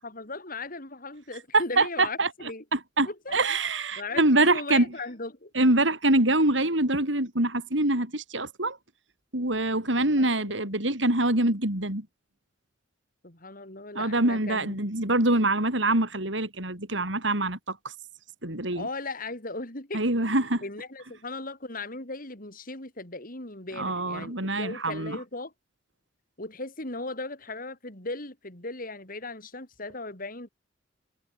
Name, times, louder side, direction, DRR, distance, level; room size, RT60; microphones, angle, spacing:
voice 1, 0.0-2.6 3.1-3.4 4.0-5.5 10.0-10.6 13.2-14.8 18.7-20.0 20.6-25.5 26.4-30.5, left 3 dB, 50° left, 6.0 m, -37 dB
voice 2, 1.5-2.3 2.7-4.8 5.5-8.8 9.3-12.1 13.9-17.9 18.4-18.9 19.9-20.6 23.8-25.2, right 2 dB, 80° right, 6.8 m, -25 dB
head